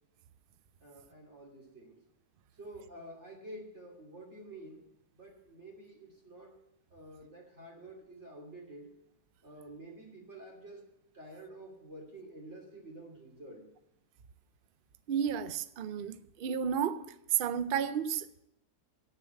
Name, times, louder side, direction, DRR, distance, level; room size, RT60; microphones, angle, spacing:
voice 1, 0.8-2.0 2.6-4.9 5.1-6.6 6.9-8.9 9.4-10.8 11.1-13.7, right 1 dB, 45° right, 3.1 m, -49 dB
voice 2, 15.1-17.0 17.3-18.4, right 8 dB, 85° right, 0.4 m, -32 dB
9.5 x 7.1 x 9.1 m
omnidirectional pair, 1.6 m